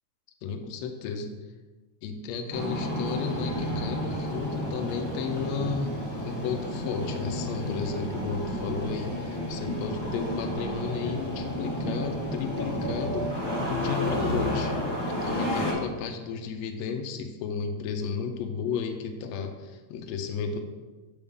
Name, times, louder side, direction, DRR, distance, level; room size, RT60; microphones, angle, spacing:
voice 1, 0.4-1.3 2.0-5.9 6.2-13.3 13.6-14.7 15.1-20.6, left 5 dB, 80° left, 4 dB, 1.6 m, -33 dB
Engine starting, 2.5-15.7, equal, 20° left, 0.6 m, -31 dB
6.9 x 5.4 x 3.6 m, 1.2 s
omnidirectional pair, 3.6 m